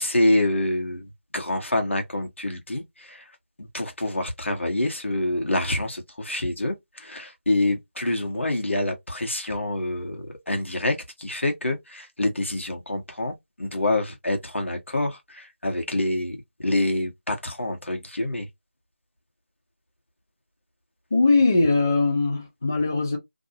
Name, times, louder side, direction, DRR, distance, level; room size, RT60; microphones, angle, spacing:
voice 1, 0.0-3.3 3.6-18.5, left 1 dB, 75° left, 1.2 m, -27 dB
voice 2, 21.1-23.2, left 3 dB, 15° left, 0.3 m, -20 dB
2.6 x 2.3 x 2.7 m
figure-of-eight pair, 170°, 7 cm